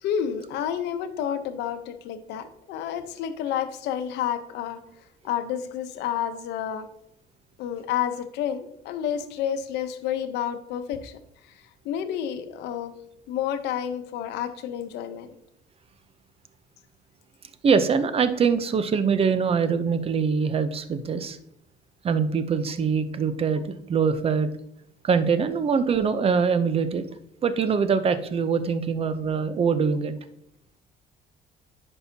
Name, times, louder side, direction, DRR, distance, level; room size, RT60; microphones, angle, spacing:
voice 1, 0.0-4.8 5.2-6.9 7.6-11.2 11.5-12.9 13.3-15.3, left 9 dB, 85° left, 9 dB, 0.8 m, -30 dB
voice 2, 17.6-21.4 22.0-24.5 25.0-27.0 27.4-30.1, right 6 dB, 35° right, 11 dB, 0.7 m, -23 dB
10.5 x 5.5 x 2.8 m, 0.74 s
cardioid pair, 110°, 17 cm